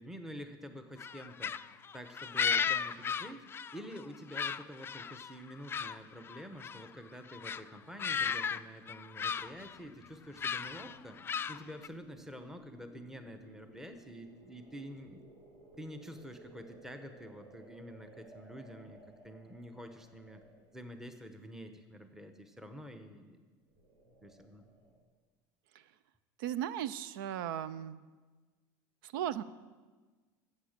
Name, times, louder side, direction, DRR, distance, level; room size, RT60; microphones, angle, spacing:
voice 1, 0.0-1.6 1.9-3.5 3.7-11.2 11.5-15.2 15.8-20.4 20.7-23.4 24.2-24.6, equal, 5° right, 7 dB, 1.0 m, -48 dB
sound 1, 1.0-4.0 4.3-6.0 6.2-6.9 7.3-7.6 8.0-8.6 8.9-9.8 10.4-11.9, left 6 dB, 20° left, 0.3 m, -35 dB
sound 2, 9.4-20.9 23.6-25.1, right 2 dB, 55° right, 4.1 m, -58 dB
voice 2, 26.4-28.0 29.0-29.4, right 10 dB, 85° right, 17 dB, 0.5 m, -36 dB
15.0 x 7.4 x 6.6 m, 1.4 s
supercardioid pair, 110°, 11 cm